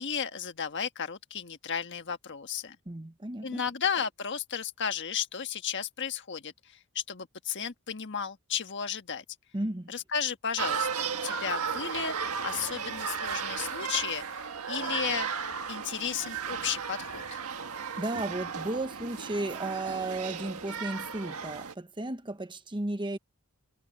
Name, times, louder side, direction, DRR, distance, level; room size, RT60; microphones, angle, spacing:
voice 1, 0.0-2.8 3.4-6.5 6.9-9.2 9.9-12.1 12.4-15.3 15.7-17.4, left 7 dB, 55° left, 1.5 m, -34 dB
voice 2, 2.9-3.6 9.5-9.9 18.0-23.2, right 2 dB, 20° right, 1.0 m, -34 dB
sound 1, 10.6-21.7, right 6 dB, 80° right, 1.6 m, -35 dB
head